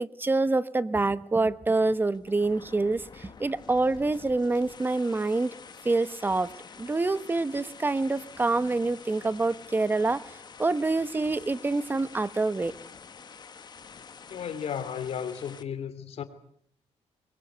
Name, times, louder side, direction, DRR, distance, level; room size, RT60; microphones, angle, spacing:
voice 1, 0.0-5.5 5.8-6.5 6.8-10.2 10.6-12.7, right 3 dB, 15° right, 1.0 m, -26 dB
sound 1, 1.8-15.6, left 6 dB, 40° left, 1.4 m, -48 dB
voice 2, 14.3-16.2, left 8 dB, 65° left, 3.0 m, -34 dB
24.0 x 22.5 x 8.1 m
cardioid pair, 125°, 12 cm